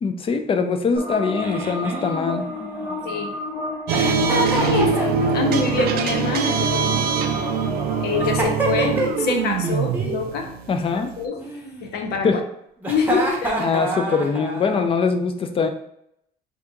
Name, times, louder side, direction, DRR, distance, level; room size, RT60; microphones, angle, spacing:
voice 1, 0.0-2.5 10.7-11.1 12.2-12.4 13.6-15.7, left 5 dB, 35° left, 7 dB, 0.5 m, -22 dB
sound 1, 1.0-8.3, left 1 dB, 90° left, 1.3 m, -31 dB
Giggle, 1.4-3.2 3.9-5.5 6.6-7.5 8.2-9.4 9.6-10.2 11.4-12.2 12.8-14.9, right 1 dB, 10° right, 0.9 m, -28 dB
sound 2, 3.9-11.2, right 6 dB, 65° right, 0.5 m, -23 dB
voice 2, 4.5-7.2 8.0-10.5 11.2-11.4 11.8-12.4 12.9-13.6, left 5 dB, 70° left, 5 dB, 0.7 m, -25 dB
3.4 x 2.9 x 3.7 m, 0.75 s
cardioid pair, 110°, 17 cm